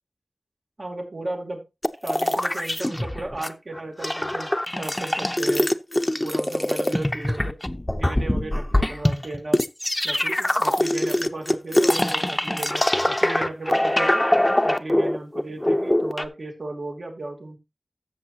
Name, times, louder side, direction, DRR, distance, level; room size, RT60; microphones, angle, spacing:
voice 1, 0.8-1.6 2.0-4.5 4.8-5.7 6.2-7.5 7.9-9.6 10.0-14.2 14.6-17.6, right 2 dB, 65° right, 1 dB, 3.0 m, -35 dB
sound 1, 1.8-3.5 3.8-16.3, left 1 dB, 15° left, 0.7 m, -23 dB
13.5 x 7.1 x 2.9 m, 0.25 s
wide cardioid pair, 65°, 0 cm